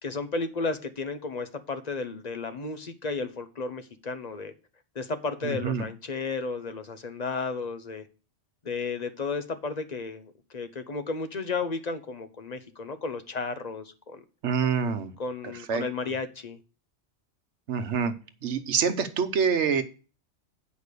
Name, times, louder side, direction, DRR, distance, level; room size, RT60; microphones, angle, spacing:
voice 1, 0.0-4.5 4.9-8.1 8.6-14.2 15.2-16.6, left 4 dB, 40° left, 0.8 m, -33 dB
voice 2, 5.4-5.8 14.4-15.1 15.7-15.8 17.7-18.1 18.4-19.8, right 6 dB, 70° right, 1.2 m, -26 dB
8.1 x 5.3 x 6.7 m
omnidirectional pair, 1.2 m